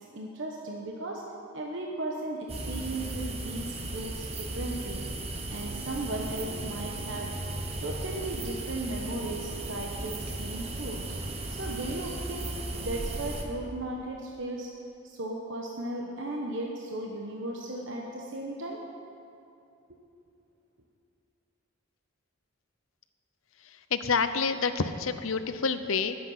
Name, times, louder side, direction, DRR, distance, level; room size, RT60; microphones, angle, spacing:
voice 1, 0.1-1.2 1.5-5.0 5.5-7.3 7.8-11.2 11.6-14.7 15.0-18.8, right 2 dB, 60° right, -1 dB, 1.2 m, -36 dB
sound 1, 2.5-13.4, right 2 dB, 30° right, 1.1 m, -36 dB
voice 2, 23.6-26.2, left 5 dB, 75° left, 10 dB, 0.7 m, -28 dB
20.5 x 8.0 x 5.7 m, 2.6 s
head